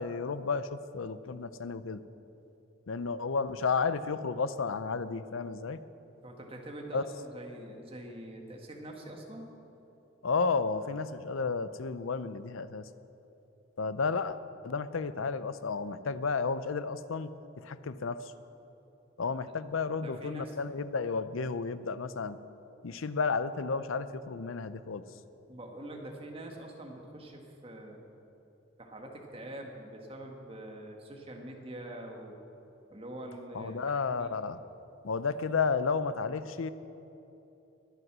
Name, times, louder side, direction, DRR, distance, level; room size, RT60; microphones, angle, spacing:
voice 1, 0.0-2.0 2.9-5.8 6.9-7.0 10.2-12.9 13.8-14.4 14.6-17.3 17.6-18.2 19.2-22.4 22.8-25.0 33.5-34.6 35.0-36.7, left 4 dB, 85° left, 14 dB, 0.6 m, -32 dB
voice 2, 6.2-9.5 20.0-20.6 25.5-28.0 28.8-32.4 32.9-34.3, right 1 dB, 30° right, 1 dB, 1.7 m, -44 dB
22.0 x 8.1 x 6.1 m, 3.0 s
head